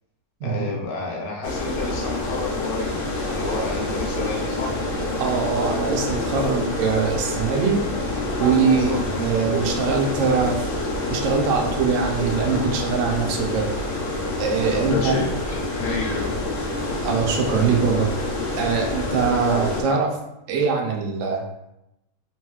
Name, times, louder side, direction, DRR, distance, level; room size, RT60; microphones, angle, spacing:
voice 1, 0.4-4.7 8.9-9.2 14.7-15.3 15.7-16.3, left 3 dB, 75° left, -1 dB, 1.2 m, -30 dB
sound 1, 1.4-19.8, left 2 dB, 60° left, 0.9 m, -27 dB
voice 2, 5.2-7.8 8.4-10.6 11.1-13.7 14.4-15.1 17.0-18.1 18.6-20.2 20.5-21.4, right 5 dB, 75° right, 1 dB, 0.7 m, -22 dB
3.1 x 2.9 x 2.3 m, 0.85 s
omnidirectional pair, 1.9 m